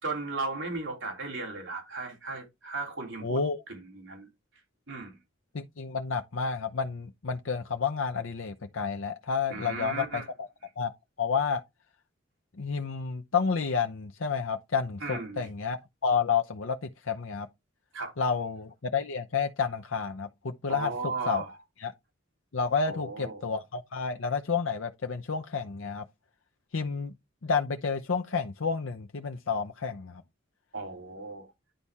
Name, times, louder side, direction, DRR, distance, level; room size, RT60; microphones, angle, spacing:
voice 1, 0.0-3.4 3.7-4.3 4.9-5.1 9.5-10.3 15.0-15.5 17.9-18.1 20.7-21.6 22.8-23.4 30.7-31.5, right 3 dB, 65° right, 3.2 m, -36 dB
voice 2, 3.2-3.6 5.5-10.5 10.8-10.9 11.2-11.6 12.6-17.5 18.2-21.4 21.8-21.9 22.5-26.0 26.7-27.1 27.4-30.2, left 5 dB, 70° left, 0.7 m, -30 dB
10.0 x 4.2 x 3.5 m
head